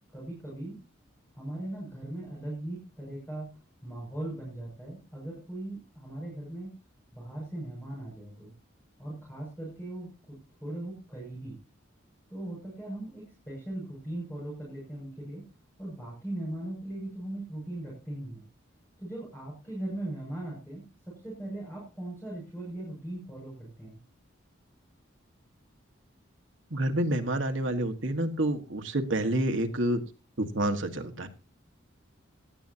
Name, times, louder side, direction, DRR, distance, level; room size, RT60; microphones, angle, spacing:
voice 1, 0.1-0.8 1.3-3.5 3.8-6.7 7.1-8.5 9.0-10.3 10.6-11.5 12.3-15.4 15.8-18.4 19.0-24.0, right 1 dB, 10° left, -4 dB, 6.5 m, -39 dB
voice 2, 26.7-30.0 30.4-31.3, right 1 dB, 70° right, 6 dB, 1.6 m, -28 dB
17.5 x 12.0 x 2.8 m, 0.30 s
head